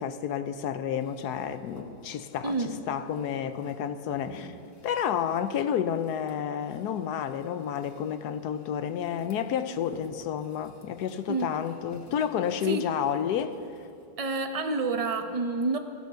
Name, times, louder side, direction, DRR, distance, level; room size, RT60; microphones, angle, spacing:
voice 1, 0.0-2.5 2.9-4.5 4.8-13.6, left 8 dB, 70° left, 1.1 m, -30 dB
sound 1, 1.0-14.1, left 2 dB, 55° left, 2.0 m, -52 dB
voice 2, 2.4-2.8 11.3-11.6 12.6-12.9 14.2-15.8, right 3 dB, 40° right, 0.5 m, -29 dB
16.5 x 10.5 x 6.8 m
omnidirectional pair, 2.0 m